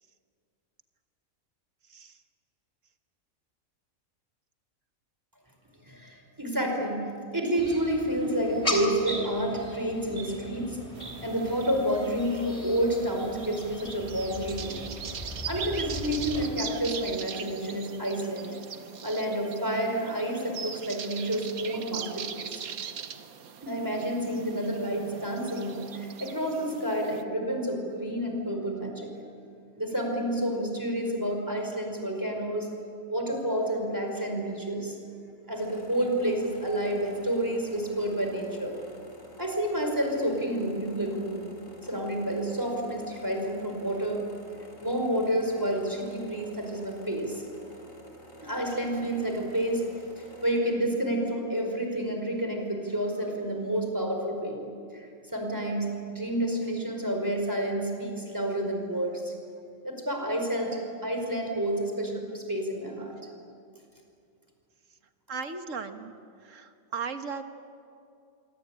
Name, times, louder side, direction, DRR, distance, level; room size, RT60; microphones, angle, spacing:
voice 1, 5.8-7.0 7.3-10.8 11.2-14.8 15.5-18.5 19.0-22.6 23.6-29.1 29.8-32.7 33.1-35.0 35.5-38.7 39.4-41.4 41.8-44.2 44.8-47.4 48.4-49.8 50.2-54.6 54.9-59.3 59.8-63.1, right 1 dB, 15° right, 2 dB, 4.9 m, -29 dB
sound 1, 7.6-16.5, left 1 dB, 25° left, 3.9 m, -38 dB
sound 2, 10.9-27.2, right 7 dB, 80° right, 1.6 m, -41 dB
sound 3, 35.5-50.6, right 1 dB, 65° left, 4.8 m, -50 dB
voice 2, 65.3-66.1 66.5-67.4, right 5 dB, 65° right, 8 dB, 1.8 m, -36 dB
26.5 x 24.5 x 8.9 m, 2.4 s
omnidirectional pair, 1.5 m